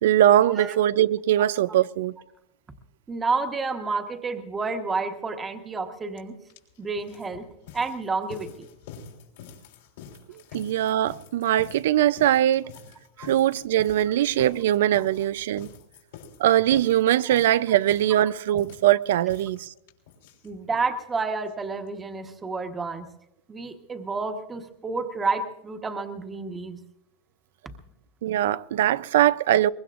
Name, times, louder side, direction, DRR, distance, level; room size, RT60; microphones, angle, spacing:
voice 1, 0.0-2.1 10.5-12.7 13.2-15.7 16.4-19.7 28.2-29.7, right 12 dB, 85° right, 0.5 m, -21 dB
voice 2, 3.1-6.3 6.8-7.5 7.7-8.7 13.2-13.3 15.0-15.1 17.3-17.4 20.4-23.1 23.5-26.8, right 4 dB, 15° right, 1.2 m, -30 dB
sound 1, 6.2-6.3 6.5-20.9 21.2-21.3 21.5-21.6 21.9-22.0, left 7 dB, 80° left, 3.5 m, -46 dB
23.0 x 21.0 x 2.5 m
supercardioid pair, 150°, 0 cm